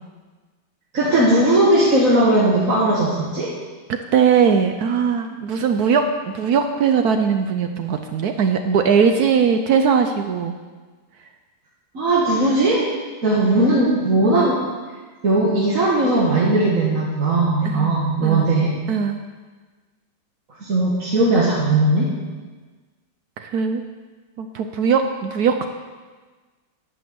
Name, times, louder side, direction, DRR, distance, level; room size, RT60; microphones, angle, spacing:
voice 1, 0.9-3.5 11.9-12.8 13.2-14.6 15.2-18.7 20.6-22.1, right 2 dB, 45° right, -6 dB, 1.8 m, -18 dB
voice 2, 3.9-10.5 17.6-18.5 18.9-19.2 23.4-23.8 24.4-25.7, right 6 dB, 70° right, 6 dB, 0.9 m, -20 dB
11.0 x 5.9 x 7.7 m, 1.4 s
omnidirectional pair, 2.2 m